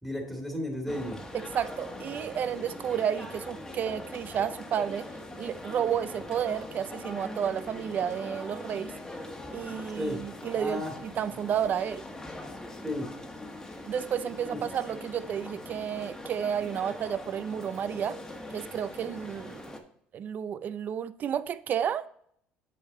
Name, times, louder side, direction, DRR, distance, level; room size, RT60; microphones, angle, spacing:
voice 1, 0.0-1.2 10.0-10.2 10.6-10.9 12.8-13.1, left 1 dB, 5° right, 2.3 m, -33 dB
sound 1, 0.9-19.8, left 1 dB, 15° left, 1.4 m, -42 dB
voice 2, 1.3-5.1 5.4-8.9 9.5-12.0 13.9-18.2 18.5-19.6 20.1-22.1, right 8 dB, 45° right, 0.5 m, -31 dB
8.5 x 5.5 x 3.9 m
supercardioid pair, 100°, 4 cm